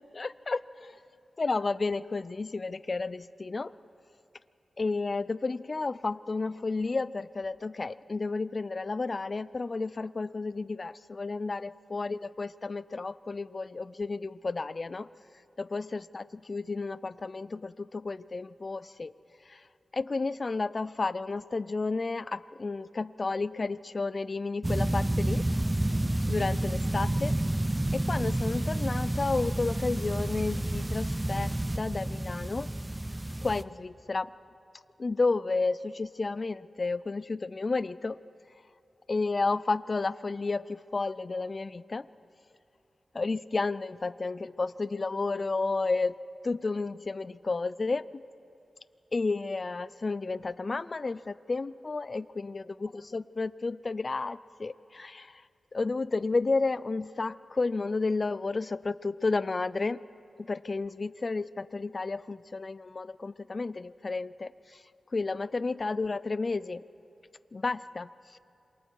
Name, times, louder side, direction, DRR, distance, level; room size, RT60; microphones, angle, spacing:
voice 1, 0.1-1.0 1.4-3.7 4.8-15.1 15.6-19.1 19.5-19.7 19.9-25.4 26.3-27.4 27.9-32.7 33.4-34.3 35.0-38.2 39.1-42.1 43.1-46.2 46.4-48.2 49.1-55.4 55.7-60.0 60.4-64.8 65.1-66.8 67.5-68.4, left 3 dB, 45° left, 17 dB, 0.4 m, -32 dB
sound 1, 24.6-33.6, right 1 dB, 15° right, 0.7 m, -29 dB
27.5 x 23.0 x 4.7 m, 2.8 s
wide cardioid pair, 75°, 0 cm